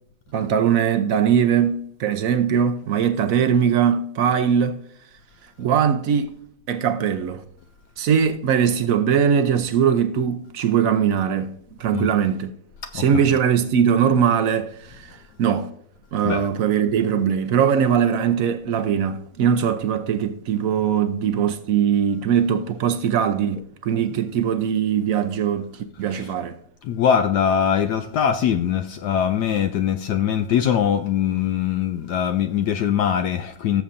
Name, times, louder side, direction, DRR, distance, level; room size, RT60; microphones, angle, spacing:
voice 1, 0.3-4.8 5.6-6.3 6.7-7.4 8.0-11.5 11.8-12.5 12.9-15.7 16.1-25.7 26.0-26.6, right 8 dB, 65° right, 0.9 m, -21 dB
voice 2, 26.8-33.8, left 8 dB, 70° left, 1.1 m, -22 dB
16.5 x 7.1 x 2.6 m
omnidirectional pair, 1.9 m